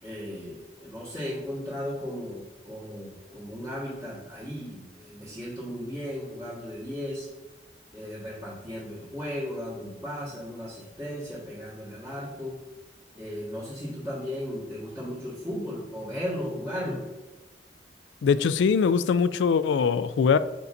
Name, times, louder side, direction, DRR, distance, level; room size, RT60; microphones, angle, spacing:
voice 1, 0.0-7.3 7.9-12.6 13.1-17.0, equal, 20° right, -11 dB, 1.6 m, -36 dB
voice 2, 18.2-20.4, left 6 dB, 85° left, 14 dB, 0.3 m, -22 dB
8.2 x 5.3 x 2.6 m, 1.1 s
head